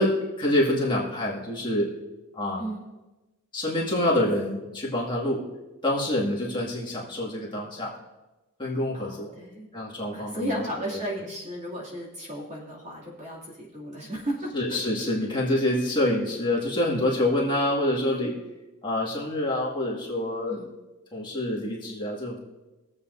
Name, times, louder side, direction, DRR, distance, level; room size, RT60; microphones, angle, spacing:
voice 1, 0.0-1.9 2.3-2.6 3.5-5.4 5.8-7.9 8.6-9.3 9.7-10.7 14.5-18.4 18.8-20.6 21.1-22.4, left 1 dB, 20° left, -5 dB, 2.2 m, -26 dB
voice 2, 8.9-9.7 10.1-14.8 15.5-15.6 20.5-20.7, equal, 35° right, -4 dB, 2.7 m, -34 dB
23.0 x 7.9 x 2.7 m, 1.1 s
head